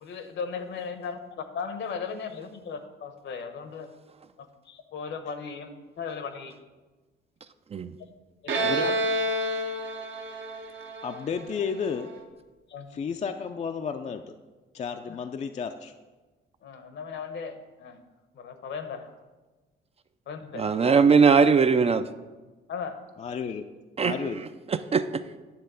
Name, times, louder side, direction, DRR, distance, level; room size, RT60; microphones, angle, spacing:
voice 1, 0.0-3.9 4.4-5.7 6.0-6.5 8.4-9.0 12.7-12.9 15.1-15.2 16.6-18.0 18.3-19.1 20.3-20.7 22.7-23.0, left 5 dB, 65° left, 9 dB, 0.9 m, -37 dB
Bowed string instrument, 8.5-12.0, right 1 dB, 70° right, 1.0 m, -29 dB
voice 2, 8.6-9.0 11.0-12.1 12.9-14.2 14.7-15.9 23.2-23.6 24.0-24.4, left 6 dB, 35° left, 6 dB, 0.4 m, -32 dB
voice 3, 20.6-22.0 24.0-24.2 24.7-25.0, right 5 dB, 30° right, 11 dB, 0.4 m, -20 dB
9.6 x 3.4 x 6.7 m, 1.2 s
cardioid pair, 90°, 20 cm